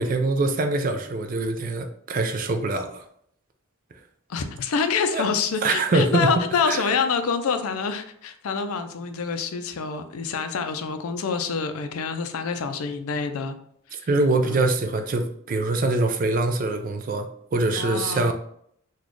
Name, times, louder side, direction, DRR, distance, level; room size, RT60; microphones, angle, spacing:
voice 1, 0.0-3.0 5.1-5.2 5.6-6.3 6.7-6.8 13.9-18.3, right 2 dB, 40° right, 6 dB, 0.3 m, -24 dB
voice 2, 4.3-13.6 13.9-14.1 14.4-14.7 17.8-18.3, left 5 dB, 85° left, 8 dB, 0.4 m, -27 dB
4.0 x 2.3 x 3.1 m, 0.67 s
head